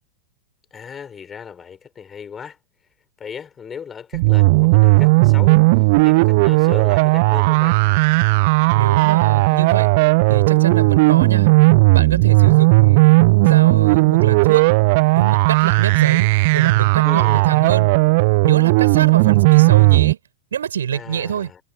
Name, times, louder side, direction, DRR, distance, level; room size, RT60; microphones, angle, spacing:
voice 1, 0.7-2.6 3.2-7.8 17.0-17.5 20.9-21.6, left 7 dB, 20° left, 7.3 m, -36 dB
sound 1, 4.1-20.1, right 25 dB, 50° right, 0.9 m, -15 dB
voice 2, 8.7-9.9 10.3-11.5 11.9-13.0 13.4-14.7 15.1-17.9 18.4-20.2 20.5-21.5, right 8 dB, 65° right, 7.4 m, -24 dB
figure-of-eight pair, 90°, 0 cm